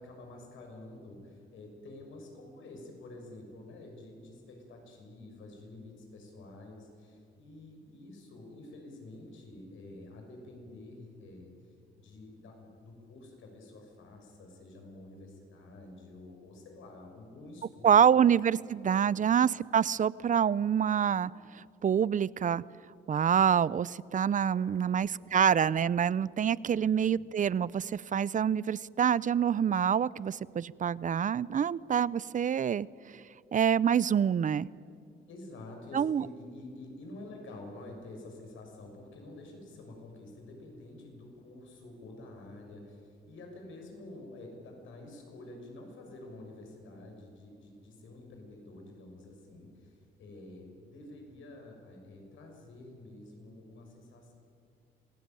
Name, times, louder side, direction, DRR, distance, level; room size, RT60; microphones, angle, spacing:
voice 1, 0.0-11.5 11.9-18.1 19.0-19.3 24.5-25.4 26.7-26.8 27.1-27.2 35.3-54.3, left 2 dB, 75° left, 2 dB, 6.3 m, -49 dB
voice 2, 17.8-21.3 21.8-22.6 23.1-32.9 33.5-34.7 35.9-36.2, right 8 dB, 40° right, 21 dB, 0.6 m, -26 dB
26.5 x 18.0 x 9.1 m, 2.4 s
cardioid pair, 90°, 20 cm